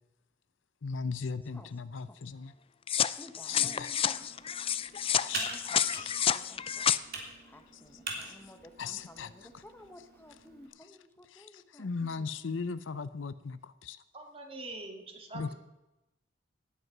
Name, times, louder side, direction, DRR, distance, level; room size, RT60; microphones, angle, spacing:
voice 1, 0.8-2.5 3.5-3.9 5.1-5.5 6.0-6.1 8.8-9.3 11.3-11.5 11.7-14.0 15.3-15.5, left 5 dB, 80° left, 15 dB, 0.6 m, -37 dB
sound 1, 2.9-7.0, left 9 dB, 30° left, 0.4 m, -30 dB
voice 2, 3.2-4.3 5.3-6.9 7.5-12.3, left 1 dB, 10° left, 7 dB, 1.1 m, -54 dB
Computer keyboard, 3.9-10.7, right 3 dB, 55° right, 3.2 m, -44 dB
voice 3, 14.1-15.5, right 2 dB, 30° right, 3 dB, 2.1 m, -44 dB
18.5 x 8.3 x 6.0 m, 0.96 s
head